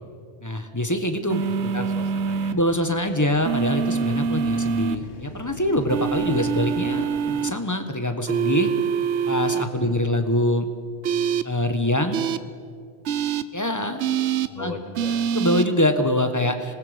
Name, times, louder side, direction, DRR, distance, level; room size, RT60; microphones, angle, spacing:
voice 1, 0.4-1.9 2.5-8.7 9.3-10.7 11.4-12.3 13.5-14.0 14.6-14.7 15.3-16.7, left 1 dB, 15° left, 7 dB, 1.3 m, -24 dB
sound 1, 1.3-2.5 3.4-5.0 5.9-7.5 8.3-9.6 11.0-11.4 12.1-12.4 13.1-13.4 14.0-14.5 15.0-15.6, right 7 dB, 85° right, 1.0 m, -24 dB
voice 2, 1.4-2.6 9.7-10.0 14.5-15.3, left 3 dB, 40° left, 5 dB, 1.4 m, -39 dB
sound 2, 1.9-7.1, left 3 dB, 85° left, 1.8 m, -42 dB
25.5 x 19.5 x 5.2 m, 2.1 s
omnidirectional pair, 1.1 m